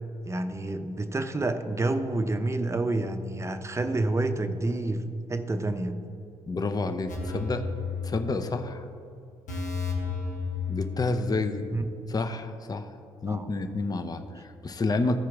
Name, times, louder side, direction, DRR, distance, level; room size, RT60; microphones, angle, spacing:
voice 1, 0.2-5.0 5.3-6.0 11.7-11.9 13.3-13.5, right 2 dB, 20° right, 8 dB, 0.7 m, -28 dB
voice 2, 6.5-7.7 8.0-8.8 10.7-11.6 12.1-12.9 13.2-15.2, left 3 dB, 30° left, 8 dB, 0.6 m, -29 dB
sound 1, 7.1-8.6 8.9-9.0 9.5-11.4 11.7-11.8, left 4 dB, 70° left, 1.4 m, -33 dB
14.0 x 4.7 x 3.5 m, 2.6 s
hypercardioid pair, 45°, 13 cm